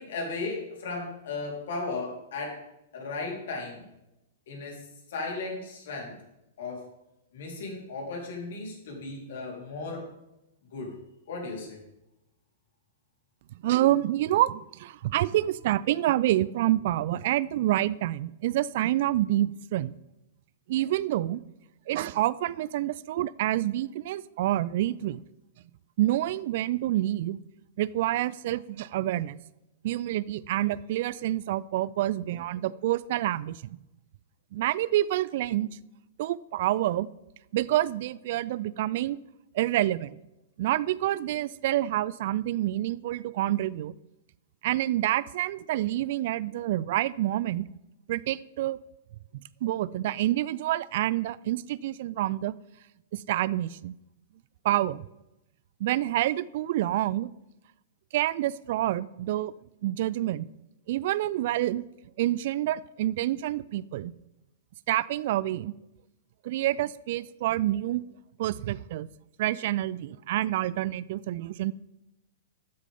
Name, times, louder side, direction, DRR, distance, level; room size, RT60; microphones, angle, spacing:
voice 1, 0.0-2.6 2.9-3.8 4.5-6.2 6.6-6.9 7.3-10.1 10.7-11.0 11.3-11.8, left 3 dB, 60° left, -1 dB, 3.8 m, -36 dB
voice 2, 13.6-19.9 20.7-21.4 21.9-25.2 26.0-27.4 27.8-29.4 29.8-33.8 34.5-35.7 36.2-37.1 37.5-39.2 39.5-40.2 40.6-43.9 44.6-47.7 48.1-48.8 49.6-52.5 53.1-53.9 54.6-55.0 55.8-57.3 58.1-59.5 59.8-60.5 60.9-61.8 62.2-64.1 64.9-65.7 66.4-68.0 68.4-69.1 69.4-71.7, right 14 dB, 55° right, 20 dB, 0.4 m, -27 dB
13.0 x 9.7 x 3.6 m, 0.91 s
figure-of-eight pair, 105°, 0 cm